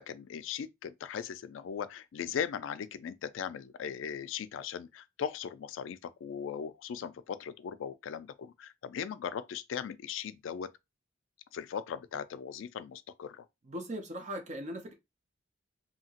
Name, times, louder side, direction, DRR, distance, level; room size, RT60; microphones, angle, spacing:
voice 1, 0.0-10.7 11.5-13.5, left 8 dB, 80° left, 0.3 m, -38 dB
voice 2, 13.7-14.9, equal, 35° right, 0.6 m, -39 dB
2.8 x 2.7 x 2.8 m
head